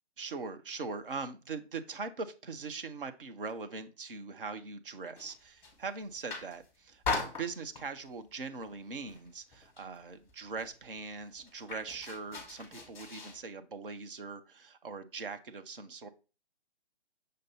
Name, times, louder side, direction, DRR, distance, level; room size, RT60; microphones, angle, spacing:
voice 1, 0.2-16.1, right 4 dB, 55° right, 9 dB, 0.7 m, -41 dB
sound 1, 5.1-5.8 6.1-6.7 7.0-8.0 8.5-8.8 9.1-10.0 10.3-10.4 10.6-13.4, left 4 dB, 10° left, 1.2 m, -39 dB
6.5 x 2.6 x 5.5 m, 0.33 s
figure-of-eight pair, 140°, 33 cm